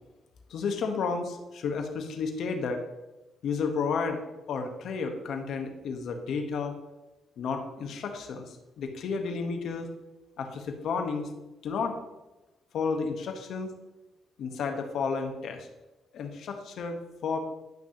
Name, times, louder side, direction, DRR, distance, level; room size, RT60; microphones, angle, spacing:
voice 1, 0.5-2.8 3.4-4.2 4.5-6.7 7.4-9.9 10.4-11.3 11.6-12.0 12.7-13.7 14.4-15.7 16.1-17.4, left 5 dB, 70° left, 4 dB, 1.1 m, -32 dB
10.5 x 6.0 x 2.9 m, 1.0 s
cardioid pair, 90°, 0 cm